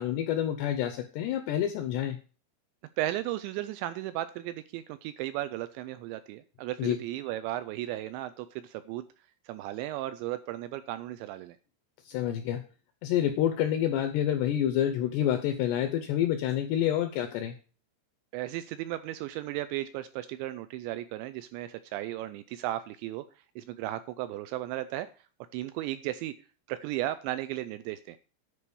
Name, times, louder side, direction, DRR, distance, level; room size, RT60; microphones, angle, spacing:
voice 1, 0.0-2.2 6.8-7.0 12.1-12.6 13.0-17.5, left 11 dB, 80° left, 6 dB, 2.5 m, -28 dB
voice 2, 3.0-9.0 9.5-11.6 18.3-23.2 23.6-25.1 25.5-26.3 26.7-28.2, right 14 dB, 85° right, 12 dB, 2.6 m, -35 dB
10.0 x 4.8 x 6.9 m, 0.37 s
omnidirectional pair, 5.6 m